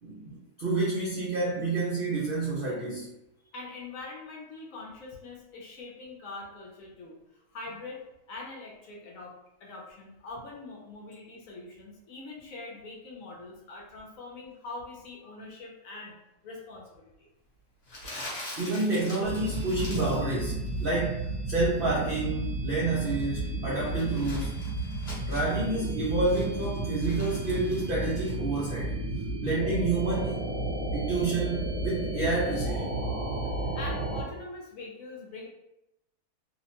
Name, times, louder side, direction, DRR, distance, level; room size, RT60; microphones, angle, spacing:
voice 1, 0.0-3.1 18.6-24.7 25.3-29.0 29.4-30.4 30.9-33.0, right 2 dB, 75° right, -5 dB, 0.5 m, -29 dB
voice 2, 3.5-9.3 9.6-16.2 16.4-17.3 33.6-35.5, left 3 dB, 70° left, -1 dB, 0.9 m, -43 dB
Crumpling crinkling, 17.9-20.3 20.6-21.0 22.7-25.6 26.0-28.3, left 1 dB, 45° left, 1.1 m, -44 dB
sound 1, 19.2-34.2, right 2 dB, 60° right, 1.1 m, -32 dB
2.7 x 2.1 x 2.8 m, 0.89 s
omnidirectional pair, 1.6 m